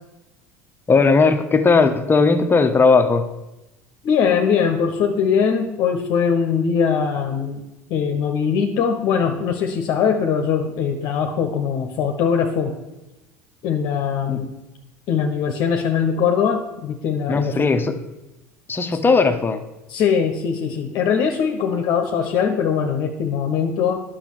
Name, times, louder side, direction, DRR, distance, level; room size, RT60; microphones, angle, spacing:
voice 1, 0.9-3.3 14.3-14.4 17.3-17.9 18.7-19.6, left 4 dB, 25° left, 8 dB, 1.1 m, -17 dB
voice 2, 4.0-7.6 7.9-12.7 13.6-14.5 15.1-17.7 19.9-24.0, left 6 dB, 55° left, 3 dB, 1.1 m, -21 dB
10.5 x 6.3 x 6.4 m, 0.97 s
hypercardioid pair, 75°, 9 cm